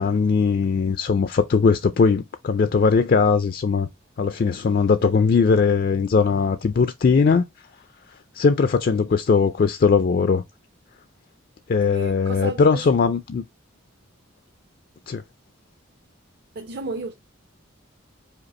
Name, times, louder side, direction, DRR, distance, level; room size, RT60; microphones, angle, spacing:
voice 1, 0.0-3.9 4.2-7.4 8.3-10.4 11.7-13.4 15.1-15.2, left 5 dB, 45° left, 0.3 m, -19 dB
voice 2, 11.9-12.9 16.5-17.1, right 3 dB, 50° right, 0.6 m, -33 dB
5.1 x 2.4 x 4.1 m
head